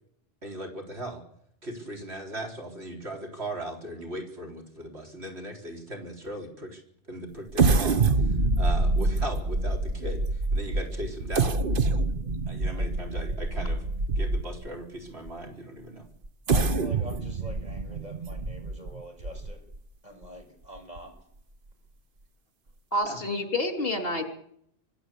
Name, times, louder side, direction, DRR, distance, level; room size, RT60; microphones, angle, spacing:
voice 1, 0.4-1.2 1.6-6.8 7.1-11.6 12.5-13.8 14.2-16.0 23.0-23.2, right 1 dB, 85° right, 2 dB, 4.4 m, -38 dB
sound 1, 7.5-14.7 15.3-15.4 16.2-19.8 20.2-20.3 20.8-21.0, right 3 dB, 55° right, 1.2 m, -26 dB
voice 2, 16.5-19.6 20.0-21.1, right 1 dB, 40° right, 3 dB, 6.3 m, -44 dB
voice 3, 22.9-24.2, left 1 dB, 65° left, 5 dB, 3.2 m, -28 dB
24.5 x 15.5 x 8.3 m, 0.72 s
omnidirectional pair, 1.1 m